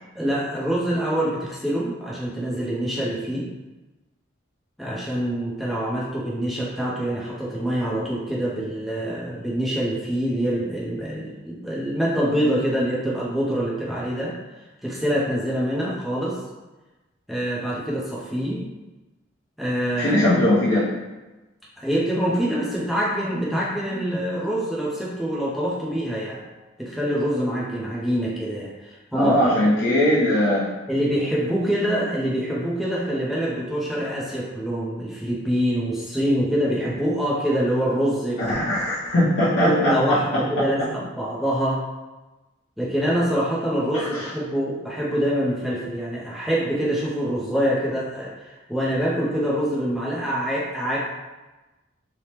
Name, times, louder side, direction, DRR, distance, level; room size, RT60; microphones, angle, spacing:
voice 1, 0.1-3.5 4.8-14.4 14.8-16.4 17.3-18.7 19.6-20.2 21.8-26.4 26.8-29.5 30.9-38.6 39.6-41.8 42.8-51.0, equal, ahead, -6 dB, 0.5 m, -25 dB
voice 2, 20.0-20.9 29.1-30.7 38.4-40.2 43.9-44.2, left 1 dB, 65° left, -11 dB, 0.7 m, -20 dB
3.2 x 2.0 x 2.9 m, 1.1 s
head